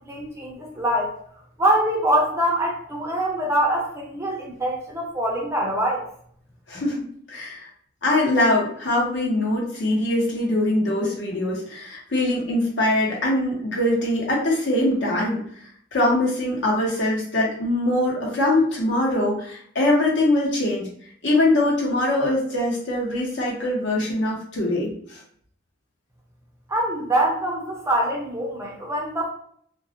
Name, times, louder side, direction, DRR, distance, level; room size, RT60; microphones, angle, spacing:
voice 1, 0.1-1.1 1.6-6.0 26.7-29.3, right 1 dB, 15° right, -2 dB, 0.5 m, -24 dB
voice 2, 6.7-7.7 8.0-15.4 15.9-20.9 21.2-25.2, left 1 dB, 65° left, -4 dB, 0.9 m, -22 dB
2.4 x 2.0 x 2.8 m, 0.62 s
head